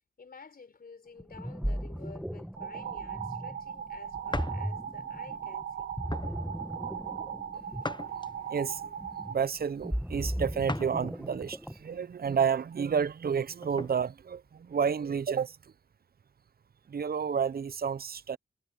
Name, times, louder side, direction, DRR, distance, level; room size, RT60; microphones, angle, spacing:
voice 1, 0.2-5.9, left 5 dB, 55° left, 4.3 m, -51 dB
Ocean, 1.2-12.0, equal, 5° right, 1.6 m, -37 dB
sound 1, 2.6-9.4, right 8 dB, 85° right, 1.7 m, -39 dB
sound 2, 4.3-4.6 5.2-5.4 6.1-6.4 7.8-8.6 10.7-11.0 11.5-11.6 13.2-13.9, left 2 dB, 25° left, 1.2 m, -38 dB
voice 2, 8.5-8.9 9.3-15.7 16.9-18.4, right 6 dB, 55° right, 0.8 m, -30 dB
cardioid pair, 50°, 19 cm